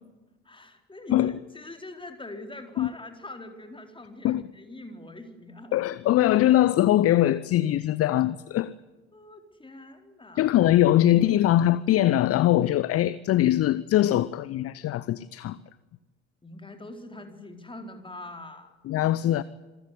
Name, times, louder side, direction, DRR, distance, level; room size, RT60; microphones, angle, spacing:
voice 1, 0.4-5.8 9.1-10.5 16.4-18.7, left 2 dB, 15° left, 4.2 m, -43 dB
voice 2, 5.7-8.7 10.4-15.6 18.9-19.4, left 13 dB, 40° left, 0.8 m, -22 dB
26.0 x 15.0 x 9.8 m
figure-of-eight pair, 55°, 36 cm